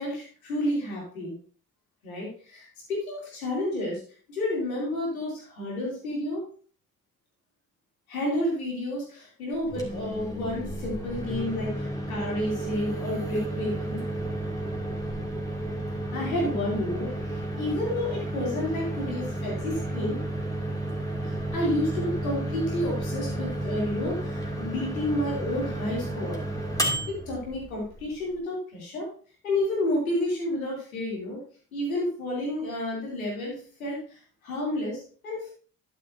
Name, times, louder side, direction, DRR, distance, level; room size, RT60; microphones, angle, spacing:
voice 1, 0.0-1.4 2.0-4.0 4.3-6.4 8.1-14.0 16.1-20.2 21.2-26.4 27.1-29.1 29.4-31.4 31.7-35.5, left 1 dB, 85° left, -2 dB, 3.0 m, -30 dB
Microwave oven, 9.6-28.4, right 1 dB, 10° left, 2.5 m, -32 dB
11.0 x 9.1 x 2.7 m, 0.42 s
figure-of-eight pair, 45°, 42 cm